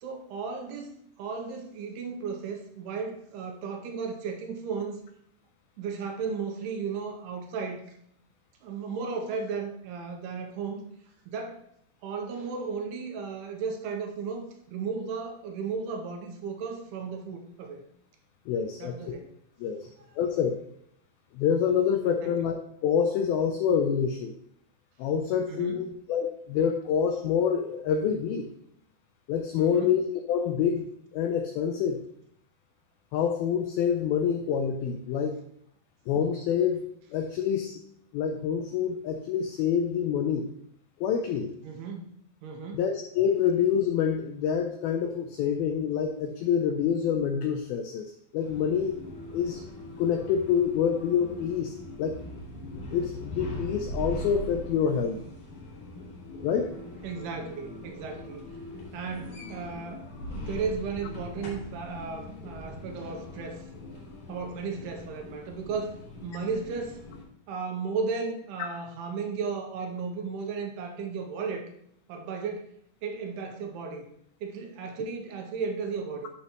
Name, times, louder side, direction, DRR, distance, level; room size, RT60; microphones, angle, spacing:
voice 1, 0.0-5.0 5.8-7.8 8.6-10.8 11.3-11.6 12.0-17.8 18.8-19.3 22.2-22.4 25.5-25.9 29.6-30.0 41.6-42.8 57.0-58.5 58.9-63.6 64.3-67.0 67.5-71.7 72.1-72.7 73.0-74.1 74.4-76.3, right 5 dB, 80° right, 3 dB, 2.6 m, -35 dB
voice 2, 18.5-19.0 19.6-19.9 20.2-20.6 21.3-22.6 22.8-24.3 25.0-28.5 29.3-30.9 31.1-32.0 33.1-35.4 36.1-36.8 37.1-37.8 38.1-40.5 41.0-41.5 42.7-49.0 49.3-49.6 50.0-52.2 52.9-55.2 56.4-56.7, left 7 dB, 90° left, 5 dB, 2.1 m, -27 dB
sound 1, 48.4-67.2, left 1 dB, 50° left, 3.6 m, -41 dB
11.5 x 5.7 x 3.0 m, 0.71 s
omnidirectional pair, 5.0 m